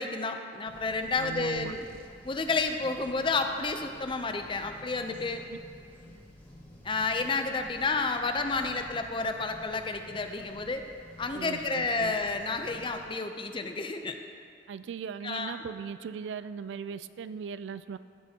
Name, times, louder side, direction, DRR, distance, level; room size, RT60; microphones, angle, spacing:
voice 1, 0.0-1.9 2.2-5.4 6.8-10.8 11.2-14.2 15.2-15.6, left 3 dB, 30° left, 6 dB, 0.5 m, -30 dB
sound 1, 0.6-13.1, left 1 dB, 10° left, 1.7 m, -51 dB
voice 2, 1.2-1.8 5.5-5.6 11.3-12.2 14.7-18.0, right 6 dB, 75° right, 14 dB, 0.3 m, -39 dB
sound 2, 1.4-2.3, right 2 dB, 55° right, 0.7 m, -55 dB
15.0 x 7.6 x 2.9 m, 2.4 s
head